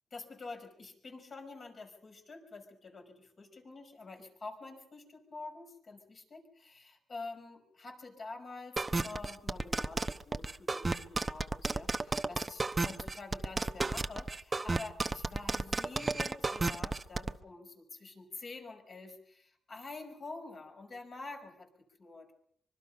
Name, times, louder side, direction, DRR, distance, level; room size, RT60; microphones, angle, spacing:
voice 1, 0.1-21.7 22.0-22.3, left 3 dB, 40° left, 4 dB, 5.5 m, -47 dB
sound 1, 8.8-17.3, right 3 dB, 20° right, 0.9 m, -32 dB
25.0 x 23.5 x 5.6 m, 0.66 s
cardioid pair, 115°, 0 cm